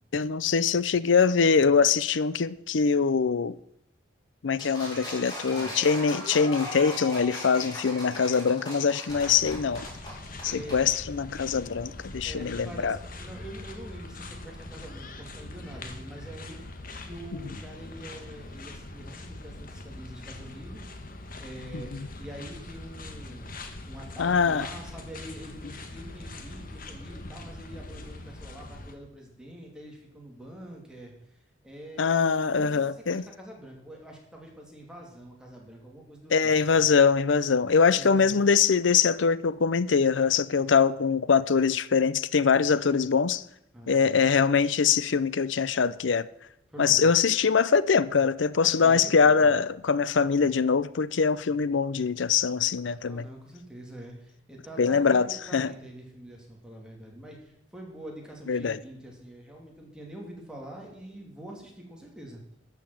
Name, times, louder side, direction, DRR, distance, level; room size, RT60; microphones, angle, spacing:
voice 1, 0.1-3.6 4.4-9.8 10.4-13.0 21.7-21.8 24.2-24.7 32.0-33.2 36.3-43.4 43.9-46.3 46.8-53.2 54.8-55.7 58.5-58.8, left 5 dB, 85° left, 0.6 m, -23 dB
sound 1, 4.6-10.8, left 1 dB, 20° left, 4.9 m, -38 dB
sound 2, 9.1-29.0, left 2 dB, 50° left, 1.4 m, -42 dB
voice 2, 10.3-10.8 12.2-16.6 17.0-20.9 21.4-21.9 22.2-23.5 23.8-31.1 31.6-32.2 32.5-36.5 37.9-38.5 43.7-44.2 46.7-47.1 48.6-49.6 53.0-62.4, right 1 dB, 5° right, 2.8 m, -45 dB
13.0 x 7.0 x 7.6 m
head